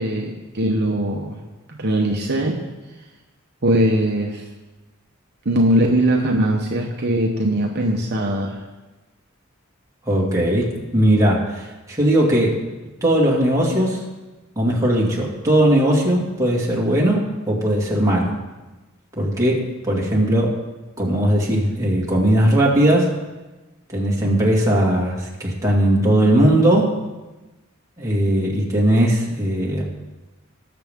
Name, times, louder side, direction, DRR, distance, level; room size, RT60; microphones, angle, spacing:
voice 1, 0.0-1.4 1.7-2.6 3.6-4.5 5.4-8.6, right 1 dB, 50° right, 0 dB, 1.0 m, -20 dB
voice 2, 10.1-12.6 13.0-14.0 14.6-18.3 19.2-20.5 21.0-23.1 23.9-26.9 28.0-29.8, right 1 dB, 15° right, -3 dB, 2.2 m, -18 dB
19.0 x 6.9 x 3.7 m, 1.1 s
head